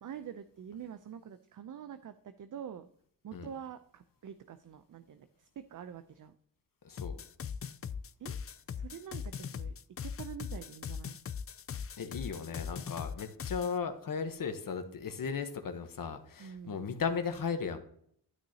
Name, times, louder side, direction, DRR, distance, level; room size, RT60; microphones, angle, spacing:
voice 1, 0.0-2.9 3.2-6.4 8.2-8.4 8.7-11.2 16.4-16.9, right 8 dB, 55° right, 11 dB, 0.6 m, -46 dB
voice 2, 6.8-7.2 12.0-17.8, left 6 dB, 60° left, 7 dB, 1.1 m, -36 dB
sound 1, 7.0-13.8, left 7 dB, 40° left, 0.4 m, -40 dB
12.5 x 6.1 x 2.8 m, 0.65 s
cardioid pair, 65°, 38 cm